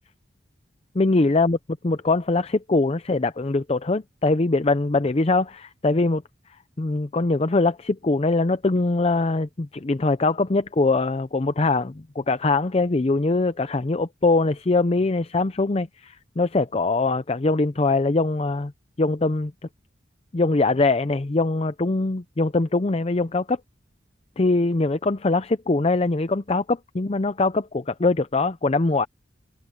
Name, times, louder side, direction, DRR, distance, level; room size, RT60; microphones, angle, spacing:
voice 1, 0.9-1.6 1.8-6.2 6.8-18.7 19.0-19.5 20.3-23.6 24.4-29.1, left 3 dB, 35° left, 0.6 m, -22 dB
head